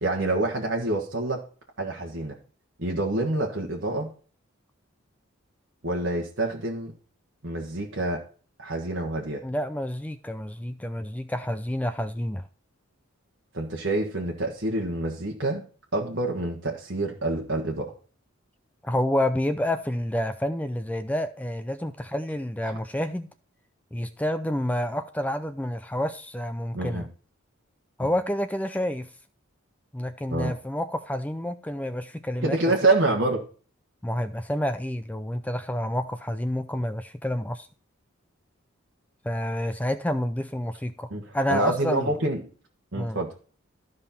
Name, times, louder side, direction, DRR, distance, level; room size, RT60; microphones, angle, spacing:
voice 1, 0.0-1.4 1.8-2.3 2.8-4.1 5.8-6.9 7.4-8.2 8.6-9.4 13.5-15.6 15.9-17.9 26.7-27.0 30.3-30.5 32.4-33.4 41.1-41.2 41.5-42.4 42.9-43.4, right 2 dB, 60° right, 1.5 m, -27 dB
voice 2, 9.4-12.4 18.8-23.3 23.9-27.1 28.0-29.1 29.9-32.6 34.0-37.7 39.2-42.1 42.9-43.2, left 1 dB, 5° left, 0.4 m, -29 dB
13.0 x 5.4 x 4.3 m
head